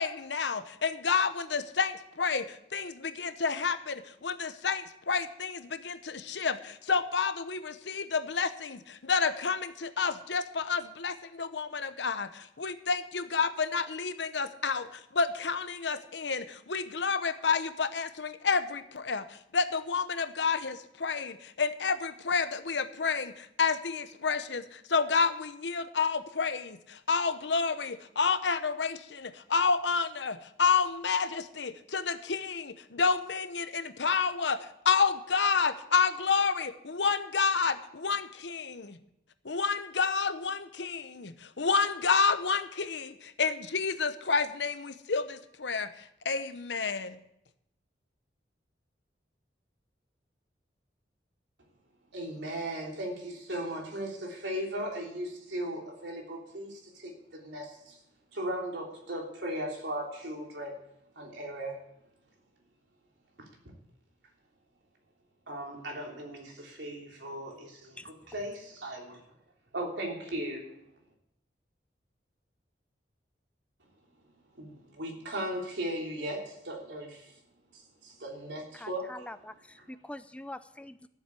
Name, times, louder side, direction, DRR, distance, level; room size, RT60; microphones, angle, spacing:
voice 1, 0.0-39.0 39.4-47.2, left 5 dB, 80° left, 11 dB, 0.9 m, -30 dB
voice 2, 52.1-58.0 58.3-60.7 61.2-61.8 65.5-69.2 69.7-70.7 74.6-77.3 78.0-79.3, right 1 dB, 85° right, 0 dB, 3.3 m, -37 dB
voice 3, 78.7-81.1, left 1 dB, 5° left, 11 dB, 0.5 m, -44 dB
13.5 x 7.6 x 8.4 m, 0.81 s
head